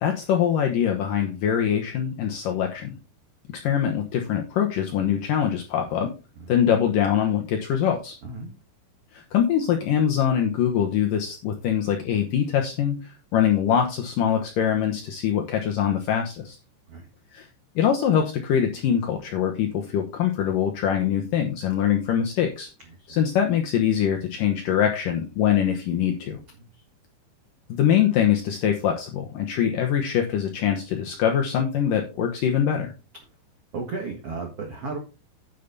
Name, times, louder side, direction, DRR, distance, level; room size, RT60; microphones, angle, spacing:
voice 1, 0.0-3.0 3.5-6.1 6.5-8.2 9.1-16.6 17.3-17.5 17.8-22.7 23.1-26.4 27.7-32.9, left 9 dB, 80° left, 3 dB, 2.0 m, -23 dB
voice 2, 8.2-8.5 16.9-17.1 23.0-23.1 26.6-26.8 33.7-35.0, right 3 dB, 70° right, 2 dB, 1.4 m, -34 dB
10.5 x 7.0 x 4.0 m, 0.30 s
omnidirectional pair, 5.5 m